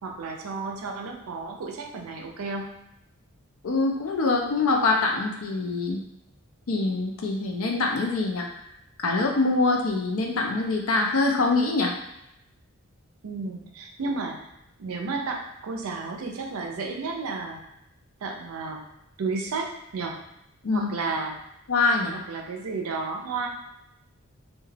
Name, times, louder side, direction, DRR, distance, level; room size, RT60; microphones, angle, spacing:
voice 1, 0.0-2.7 13.2-14.5 14.8-17.6 18.2-18.8 19.2-20.2 20.7-21.4 22.1-23.5, right 4 dB, 80° right, 2 dB, 0.5 m, -32 dB
voice 2, 3.6-6.0 6.7-8.5 9.0-11.9 20.6-20.9 21.7-22.1, left 3 dB, 75° left, 1 dB, 0.5 m, -24 dB
2.3 x 2.2 x 3.2 m, 0.84 s
head